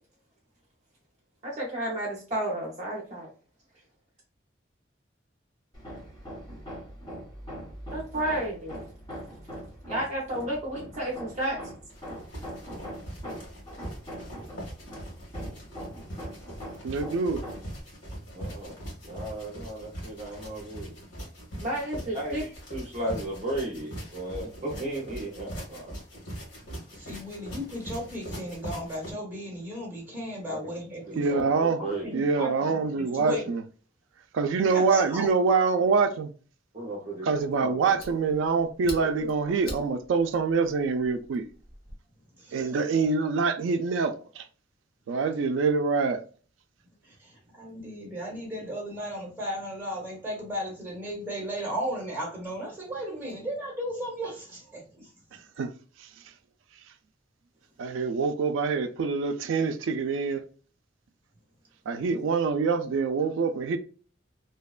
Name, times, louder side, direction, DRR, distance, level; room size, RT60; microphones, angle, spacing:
voice 1, 1.4-3.3 7.9-8.8 9.9-11.6 18.3-18.8 19.1-21.0 21.6-25.9 30.5-30.6 31.1-32.1 36.7-37.8 39.2-39.3, right 1 dB, 35° right, 0.6 m, -33 dB
Hammer, 5.7-17.8, equal, 20° left, 0.9 m, -42 dB
sound 1, 11.9-29.1, equal, 85° left, 1.4 m, -41 dB
voice 2, 16.8-17.4 31.2-31.8 32.1-33.6 34.3-36.3 37.2-41.5 42.5-44.5 45.1-46.2 55.6-55.7 56.0-56.1 57.8-60.4 61.9-63.8, right 4 dB, 90° right, 0.3 m, -25 dB
voice 3, 26.6-31.3 31.8-33.5 34.7-35.3 42.4-42.8 47.0-55.4, equal, 10° right, 1.0 m, -35 dB
Fire, 37.4-42.0, left 1 dB, 50° left, 0.9 m, -46 dB
2.7 x 2.1 x 2.3 m
head